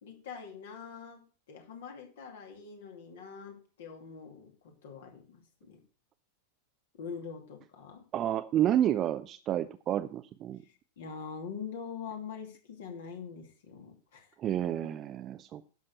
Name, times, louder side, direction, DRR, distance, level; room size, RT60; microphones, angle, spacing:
voice 1, 0.0-1.2 1.5-5.8 6.9-8.0 10.6-14.4, left 6 dB, 60° left, 3 dB, 2.6 m, -44 dB
voice 2, 8.1-10.6 14.4-15.6, right 11 dB, 30° right, 9 dB, 0.6 m, -30 dB
11.0 x 6.6 x 6.7 m, 0.39 s
figure-of-eight pair, 90°, 0 cm